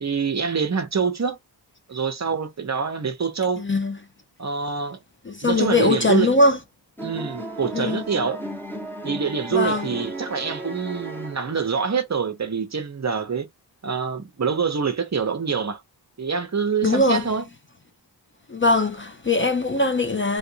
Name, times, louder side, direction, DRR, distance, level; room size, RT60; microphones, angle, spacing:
voice 1, 0.0-1.4 1.9-3.6 4.4-5.0 5.4-6.3 7.0-8.4 9.0-13.5 13.8-15.8 16.2-17.4, right 5 dB, 40° right, 0.7 m, -25 dB
voice 2, 3.6-4.0 5.2-6.6 7.7-8.1 9.5-9.9 16.8-17.2 18.5-20.4, left 2 dB, 25° left, 0.5 m, -21 dB
sound 1, 7.0-11.9, right 1 dB, 5° left, 1.0 m, -35 dB
3.4 x 2.5 x 2.7 m
wide cardioid pair, 75°, 44 cm